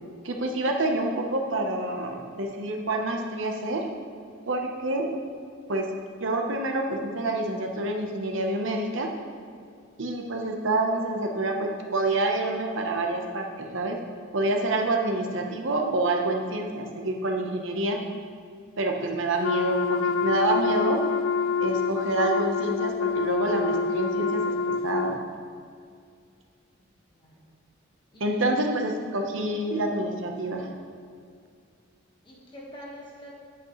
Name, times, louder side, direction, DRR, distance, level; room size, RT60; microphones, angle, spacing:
voice 1, 0.2-3.9 4.5-5.1 5.7-5.9 6.2-9.1 10.0-14.0 14.3-18.0 18.8-21.0 21.6-24.5 24.8-25.3 28.2-30.7, right 2 dB, 65° right, 2 dB, 0.9 m, -27 dB
Wind instrument woodwind instrument, 19.4-25.2, left 5 dB, 65° left, 0.3 m, -26 dB
voice 2, 27.1-27.5 28.1-28.8 32.2-33.3, equal, 25° left, -4 dB, 1.4 m, -45 dB
8.2 x 8.1 x 3.1 m, 2.3 s
head